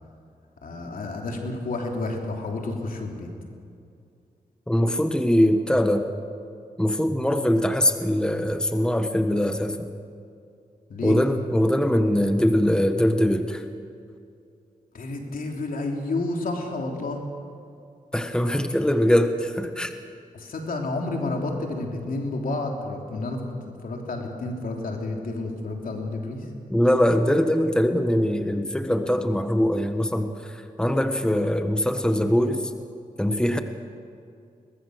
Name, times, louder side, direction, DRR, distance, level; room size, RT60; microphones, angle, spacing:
voice 1, 0.6-3.3 10.9-11.2 14.9-17.2 20.3-26.5, left 2 dB, 70° left, 1 dB, 3.4 m, -30 dB
voice 2, 4.7-6.1 6.8-9.9 11.0-13.6 18.1-19.9 26.7-32.7 33.2-33.6, equal, 5° left, 7 dB, 1.4 m, -22 dB
22.5 x 20.0 x 6.5 m, 2.5 s
cardioid pair, 55°, 15 cm